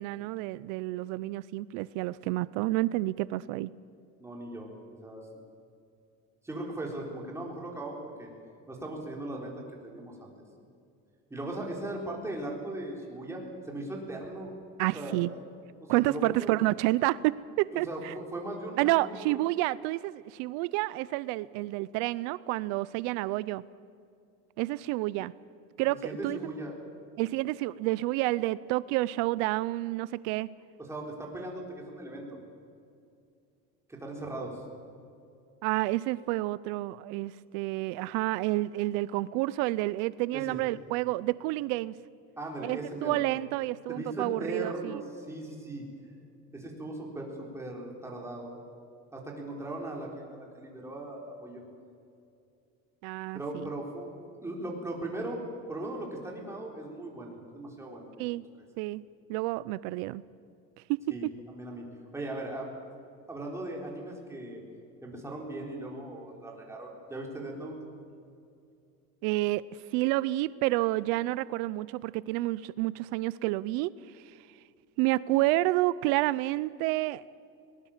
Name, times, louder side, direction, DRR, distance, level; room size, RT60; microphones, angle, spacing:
voice 1, 0.0-3.7 14.8-15.3 15.9-18.1 18.8-23.6 24.6-25.3 25.8-26.4 27.2-30.5 35.6-41.9 42.6-45.0 53.0-53.7 58.2-58.4 58.8-59.0 59.3-60.2 60.9-61.3 69.2-69.6 69.9-74.3 75.0-77.2, right 18 dB, 85° right, 18 dB, 0.6 m, -29 dB
voice 2, 4.2-4.7 5.0-5.3 6.4-8.3 8.7-10.3 11.3-14.5 14.9-15.2 15.8-16.6 17.7-19.4 25.8-26.7 30.9-32.3 33.9-34.6 40.3-40.6 42.4-43.2 43.9-45.8 46.5-48.5 49.1-51.6 53.3-55.4 55.7-58.3 61.1-61.9 62.1-62.7 63.3-64.6 65.0-67.8, right 1 dB, 10° right, -1 dB, 4.1 m, -38 dB
22.0 x 19.5 x 7.4 m, 2.5 s
cardioid pair, 150°, 29 cm